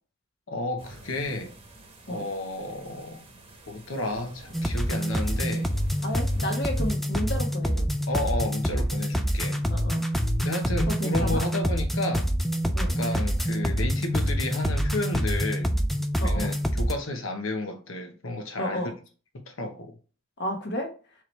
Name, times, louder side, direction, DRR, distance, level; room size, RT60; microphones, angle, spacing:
voice 1, 0.5-1.5 2.1-3.3 3.7-5.7 8.1-9.6 10.4-12.3 12.8-15.7 16.2-18.8 19.5-19.9, left 2 dB, 85° left, 1.1 m, -32 dB
sound 1, 0.8-7.0, right 2 dB, 25° right, 1.0 m, -49 dB
sound 2, 4.5-16.9, equal, ahead, 0.3 m, -26 dB
voice 2, 6.0-7.9 9.7-10.0 10.9-11.4 12.7-13.0 16.2-16.5 18.6-18.9 20.4-20.9, left 1 dB, 55° left, 1.2 m, -32 dB
4.6 x 3.1 x 3.2 m
head